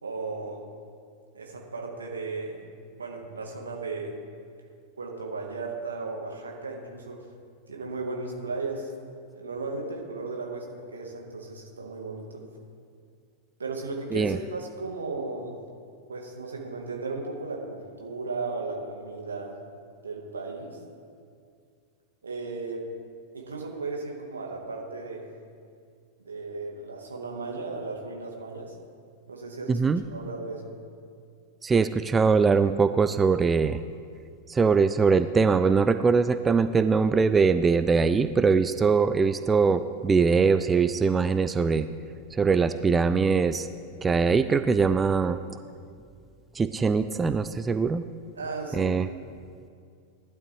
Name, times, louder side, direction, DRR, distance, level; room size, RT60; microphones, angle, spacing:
voice 1, 0.0-0.7 1.3-2.6 3.0-4.2 5.0-7.2 7.7-8.9 9.3-12.4 13.6-15.5 16.1-19.6 20.0-20.8 22.2-22.8 23.3-25.3 26.3-28.8 29.3-29.8 30.1-30.7 48.4-48.9, right 3 dB, 75° right, 1 dB, 2.0 m, -35 dB
voice 2, 29.7-30.0 31.6-33.8 34.5-41.9 42.3-43.7 44.0-45.6 46.5-48.0 48.7-49.1, right 5 dB, 15° right, 11 dB, 0.4 m, -22 dB
18.5 x 12.0 x 3.2 m, 2.3 s
figure-of-eight pair, 90°, 0 cm